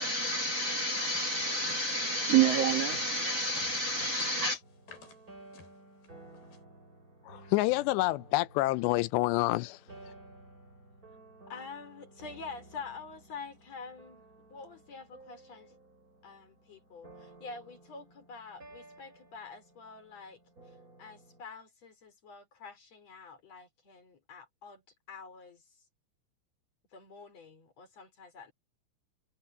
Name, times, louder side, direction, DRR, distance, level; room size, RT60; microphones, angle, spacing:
voice 1, 0.0-4.6, right 3 dB, 70° right, 1.5 m, -29 dB
sound 1, 1.1-3.2 3.6-5.2 5.5-5.7 6.0-6.1 6.3-6.6, left 4 dB, 60° left, 6.3 m, -52 dB
sound 2, 4.6-21.4, right 2 dB, 20° right, 7.4 m, -55 dB
voice 2, 7.3-9.8, left 19 dB, 85° left, 2.8 m, -28 dB
voice 3, 11.5-14.2 14.5-15.8 16.2-20.4 21.0-24.8 25.1-25.6 26.9-28.5, left 4 dB, 40° left, 5.2 m, -47 dB
omnidirectional pair, 5.0 m